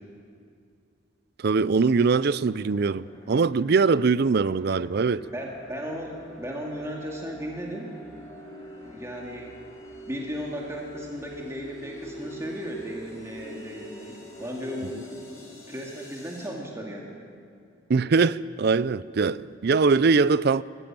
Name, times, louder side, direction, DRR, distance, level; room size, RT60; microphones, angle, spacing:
voice 1, 1.4-5.2 17.9-20.6, right 4 dB, 55° right, 0.4 m, -22 dB
sound 1, 1.5-16.5, equal, 15° left, 5.7 m, -45 dB
voice 2, 5.3-8.0 8.8-9.6 10.1-17.1, equal, 15° right, 2.1 m, -36 dB
21.5 x 14.5 x 8.9 m
head